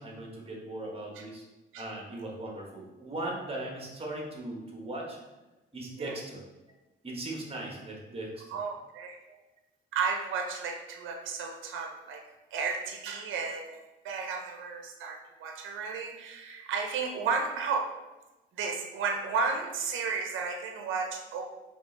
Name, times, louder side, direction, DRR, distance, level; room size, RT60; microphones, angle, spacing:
voice 1, 0.0-1.4 1.8-5.2 5.7-6.4 7.0-8.6, right 1 dB, 30° right, -1 dB, 1.2 m, -38 dB
voice 2, 8.5-9.2 9.9-12.2 12.5-17.9 18.6-21.4, right 5 dB, 80° right, 2 dB, 0.6 m, -33 dB
4.3 x 3.2 x 3.3 m, 1.1 s
cardioid pair, 90°, 20 cm